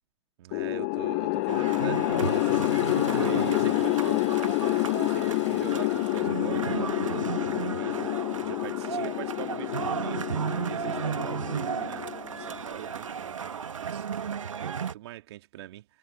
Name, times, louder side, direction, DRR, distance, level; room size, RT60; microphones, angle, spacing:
voice 1, 0.4-16.0, right 15 dB, 50° right, 2.7 m, -42 dB
sound 1, 0.5-12.8, left 29 dB, 35° left, 0.3 m, -28 dB
sound 2, 1.5-14.9, right 7 dB, 70° right, 1.9 m, -34 dB
Toilet flush, 1.9-7.1 7.5-7.9 12.4-12.5 12.7-13.5, left 10 dB, 60° left, 7.9 m, -44 dB
figure-of-eight pair, 105°, 17 cm